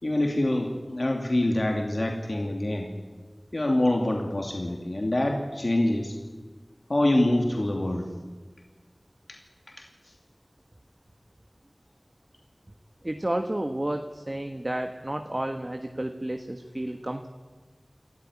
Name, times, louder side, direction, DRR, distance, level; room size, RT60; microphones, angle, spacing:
voice 1, 0.0-2.9 3.5-6.1 6.9-8.1 9.3-9.4, left 1 dB, 55° left, 2 dB, 2.6 m, -25 dB
voice 2, 13.0-17.3, right 1 dB, 35° right, 6 dB, 1.4 m, -31 dB
27.0 x 14.5 x 9.8 m, 1.4 s
wide cardioid pair, 45°, 0 cm